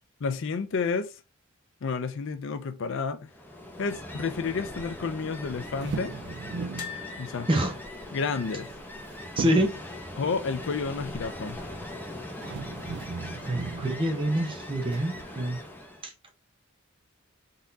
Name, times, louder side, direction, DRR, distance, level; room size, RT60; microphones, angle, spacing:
voice 1, 0.2-1.1 1.8-3.3 3.8-6.2 7.2-7.5 8.1-8.7 10.2-11.6, left 5 dB, 65° left, 0.5 m, -30 dB
Ocean, 3.3-16.1, left 1 dB, 10° left, 0.8 m, -41 dB
sound 1, 5.5-7.0 8.4-9.0 9.4-9.9 11.9-12.0 12.4-14.1 14.9-15.2, right 5 dB, 55° right, 0.4 m, -36 dB
sound 2, 6.8-9.8 10.1-10.3 10.5-10.6 11.9-12.4 12.9-13.0, left 7 dB, 45° left, 1.9 m, -45 dB
voice 2, 9.4-9.7 13.5-15.6, right 1 dB, 25° right, 0.8 m, -26 dB
4.0 x 3.6 x 2.7 m
head